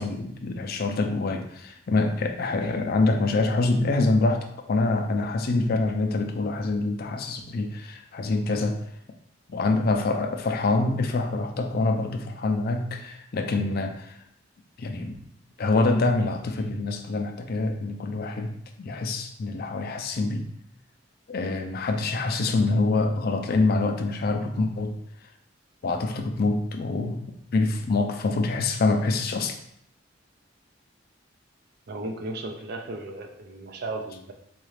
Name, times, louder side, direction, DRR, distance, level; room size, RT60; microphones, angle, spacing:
voice 1, 0.0-8.8 9.5-14.2 14.8-15.1 15.6-20.5 21.3-24.9 25.8-29.6, left 3 dB, 55° left, 5 dB, 0.4 m, -25 dB
voice 2, 31.9-34.3, right 2 dB, 55° right, 4 dB, 0.5 m, -35 dB
3.9 x 2.4 x 3.2 m, 0.71 s
head